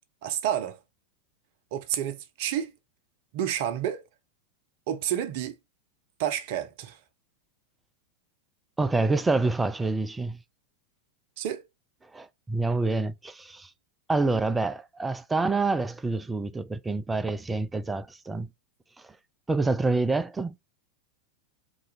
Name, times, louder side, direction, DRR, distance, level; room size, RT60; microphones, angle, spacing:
voice 1, 0.2-0.8 1.7-2.7 3.3-4.0 4.9-5.5 6.2-7.0 11.4-11.6, right 10 dB, 50° right, 0.6 m, -29 dB
voice 2, 8.8-10.4 12.1-13.7 14.1-18.5 19.0-19.1 19.5-20.6, right 3 dB, 10° right, 0.4 m, -27 dB
3.8 x 3.1 x 4.1 m
figure-of-eight pair, 90°, 0 cm